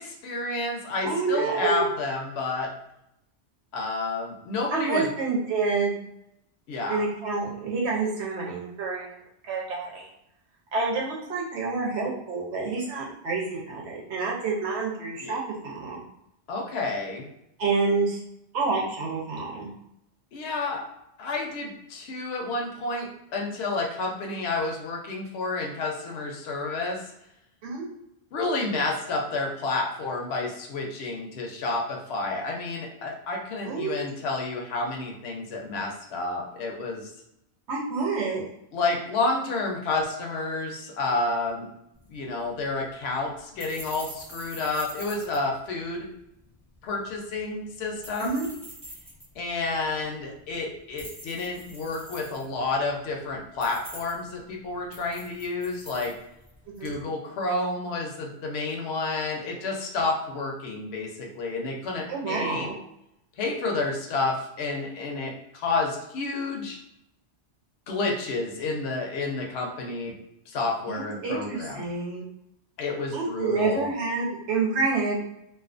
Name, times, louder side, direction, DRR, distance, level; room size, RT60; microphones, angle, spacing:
voice 1, 0.0-2.7 3.7-5.1 6.7-7.0 15.2-15.3 16.5-17.3 20.3-20.8 21.2-27.0 28.3-37.1 38.7-41.7 42.1-46.1 46.8-48.4 49.4-56.1 56.8-62.7 63.4-66.8 67.9-70.1 70.5-71.9 72.8-73.9, left 3 dB, 70° left, 0 dB, 0.8 m, -30 dB
voice 2, 1.0-1.9 4.7-6.0 6.9-9.2 9.5-10.1 10.7-16.0 17.6-18.2 18.5-19.7 27.6-27.8 33.7-34.0 37.7-38.4 48.2-48.5 56.7-56.9 62.1-62.7 70.9-72.2 73.1-75.2, right 4 dB, 75° right, -2 dB, 0.9 m, -28 dB
sound 1, 41.9-57.0, right 1 dB, 5° right, 0.7 m, -47 dB
2.4 x 2.4 x 2.5 m, 0.81 s
omnidirectional pair, 1.1 m